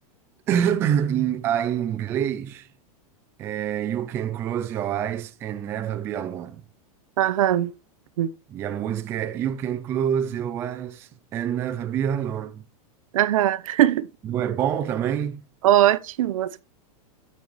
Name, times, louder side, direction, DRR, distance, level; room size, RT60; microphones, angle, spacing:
voice 1, 0.5-2.7 3.4-6.6 8.5-12.7 14.2-15.4, right 9 dB, 15° right, 0.4 m, -26 dB
voice 2, 7.2-7.7 8.2-8.3 13.1-14.1 15.6-16.6, right 13 dB, 65° right, 0.7 m, -20 dB
15.5 x 5.4 x 3.0 m
supercardioid pair, 175°, 19 cm